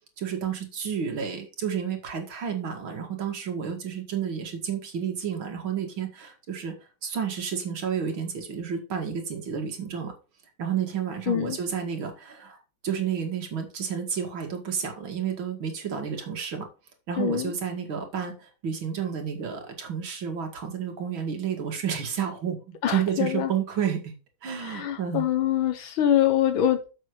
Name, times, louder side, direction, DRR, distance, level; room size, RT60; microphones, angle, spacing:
voice 1, 0.2-6.7 7.0-10.1 10.6-12.6 12.8-16.7 17.1-24.1 24.4-25.2, right 7 dB, 85° right, 3 dB, 2.8 m, -31 dB
voice 2, 11.3-11.6 17.2-17.5 22.8-23.5 24.6-26.9, left 10 dB, 85° left, 9 dB, 1.8 m, -24 dB
7.4 x 6.7 x 4.8 m, 0.32 s
omnidirectional pair, 2.1 m